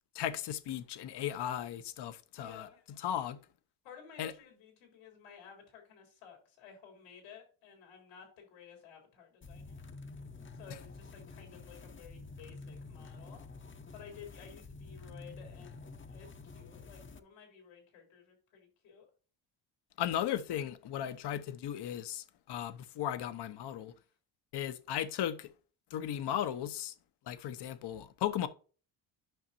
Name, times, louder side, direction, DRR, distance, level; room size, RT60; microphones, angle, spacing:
voice 1, 0.1-2.7 3.0-3.4 4.2-4.3 20.0-23.9 24.5-25.5 25.9-26.9 27.3-28.5, left 10 dB, 55° left, 0.9 m, -36 dB
voice 2, 2.3-2.8 3.8-9.8 10.5-13.5 13.9-19.1 24.0-24.2, left 7 dB, 90° left, 3.7 m, -54 dB
sound 1, 9.4-17.2, left 3 dB, 25° left, 0.8 m, -49 dB
9.2 x 5.8 x 2.7 m
supercardioid pair, 65°, 49 cm